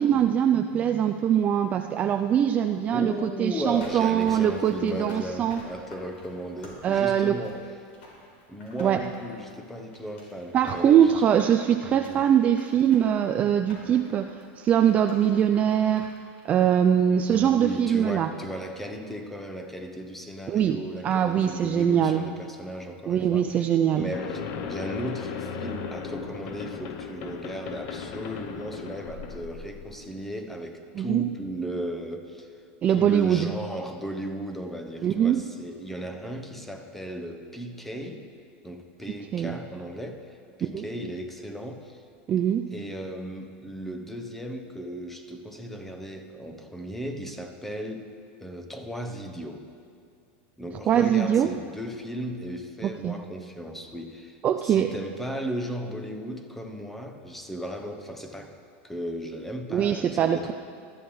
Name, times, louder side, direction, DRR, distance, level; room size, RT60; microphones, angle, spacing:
voice 1, 0.0-5.6 6.8-7.4 8.8-9.0 10.5-16.1 16.4-18.3 20.5-22.3 23.1-24.1 31.0-31.2 32.8-33.5 35.0-35.4 39.3-39.5 40.7-40.8 42.3-42.7 50.9-51.5 52.8-53.1 54.4-54.9 59.7-60.5, right 9 dB, 25° right, 5 dB, 0.3 m, -22 dB
voice 2, 2.9-7.7 8.5-11.1 11.9-12.3 17.3-32.5 32.9-38.3 38.6-42.0 42.7-48.1 48.4-49.7 50.6-58.6 58.8-60.5, equal, 5° left, 5 dB, 0.9 m, -36 dB
sound 1, 3.6-17.6 17.9-18.0, left 1 dB, 90° left, 4.2 m, -49 dB
sound 2, 24.1-30.1, left 6 dB, 50° left, 0.9 m, -37 dB
20.0 x 13.0 x 3.2 m, 2.4 s
supercardioid pair, 160°, 6 cm